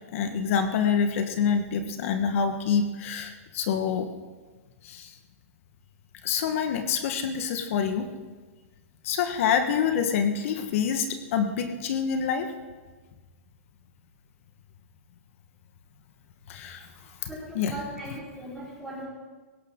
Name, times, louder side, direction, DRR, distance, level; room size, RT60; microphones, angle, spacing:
voice 1, 0.0-4.1 4.8-5.1 6.2-8.1 9.0-12.5 16.5-16.9 17.2-17.8, left 7 dB, 60° left, 7 dB, 1.4 m, -27 dB
voice 2, 17.3-19.1, right 1 dB, 5° right, -11 dB, 4.5 m, -38 dB
17.5 x 17.0 x 3.8 m, 1.3 s
hypercardioid pair, 140°, 8 cm